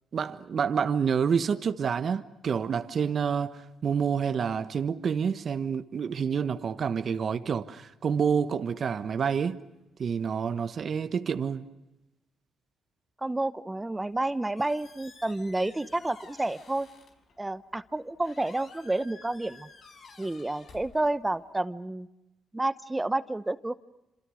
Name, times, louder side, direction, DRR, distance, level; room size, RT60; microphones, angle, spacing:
voice 1, 0.1-9.6 10.0-11.7, right 6 dB, 50° right, 1.3 m, -28 dB
voice 2, 13.2-16.9 17.4-19.7 20.2-22.1 22.5-23.7, right 2 dB, 15° right, 0.9 m, -30 dB
Squeak, 14.0-21.5, left 4 dB, 55° left, 5.3 m, -53 dB
28.0 x 27.0 x 6.5 m
cardioid pair, 90°, 0 cm